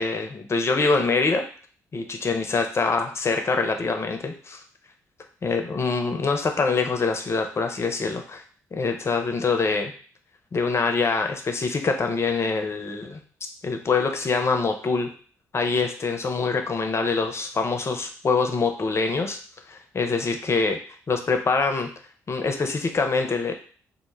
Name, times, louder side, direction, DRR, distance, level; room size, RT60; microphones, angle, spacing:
voice 1, 0.0-1.4 1.9-4.6 5.4-8.4 8.7-9.9 10.5-13.2 13.6-15.1 15.5-19.4 19.7-20.8 21.1-21.9 22.3-23.5, left 4 dB, 35° left, 5 dB, 0.5 m, -24 dB
2.1 x 2.0 x 3.2 m, 0.43 s
hypercardioid pair, 45°, 8 cm